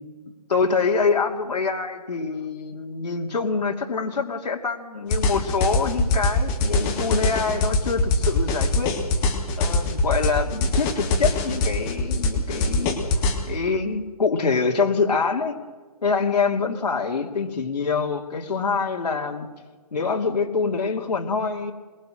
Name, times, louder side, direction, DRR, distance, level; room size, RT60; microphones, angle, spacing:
voice 1, 0.5-8.9 9.6-13.0 13.5-15.5 16.0-19.5 19.9-21.7, left 4 dB, 80° left, 1 dB, 2.6 m, -25 dB
sound 1, 5.1-13.4, left 2 dB, 5° left, 0.5 m, -23 dB
22.0 x 21.0 x 6.3 m, 1.4 s
hypercardioid pair, 175°, 21 cm